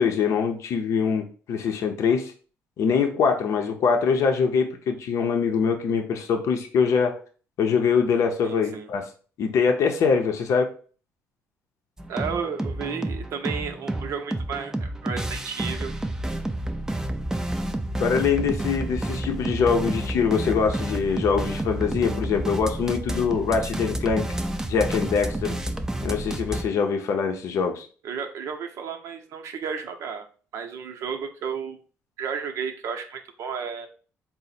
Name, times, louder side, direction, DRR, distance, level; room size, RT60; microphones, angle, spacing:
voice 1, 0.0-2.3 2.8-7.1 7.6-9.0 9.4-10.7 18.0-24.2 24.7-25.6 26.0-27.9, left 6 dB, 65° left, 4 dB, 0.6 m, -23 dB
voice 2, 8.4-8.9 12.1-15.9 28.0-30.3 30.5-31.8 32.2-33.9, right 6 dB, 65° right, 4 dB, 0.7 m, -33 dB
sound 1, 12.0-26.6, right 1 dB, 10° right, 0.4 m, -30 dB
3.9 x 2.1 x 4.1 m, 0.40 s
cardioid pair, 90°, 6 cm